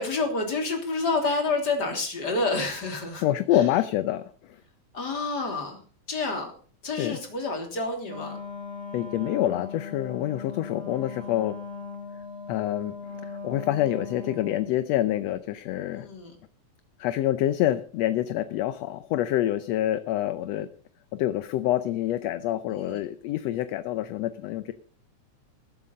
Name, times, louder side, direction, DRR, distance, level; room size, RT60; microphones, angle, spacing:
voice 1, 0.0-3.3 3.5-3.6 4.9-5.8 6.1-6.5 6.8-8.4 15.9-16.4 22.7-23.0, left 3 dB, 35° left, 3 dB, 3.6 m, -29 dB
voice 2, 3.2-4.6 7.0-7.2 8.9-11.6 12.5-13.0 13.2-16.1 17.0-20.7 21.1-24.7, left 13 dB, 75° left, 12 dB, 1.8 m, -27 dB
Wind instrument woodwind instrument, 8.0-14.7, left 4 dB, 35° right, 4.2 m, -39 dB
20.5 x 8.1 x 5.3 m, 0.43 s
omnidirectional pair, 3.3 m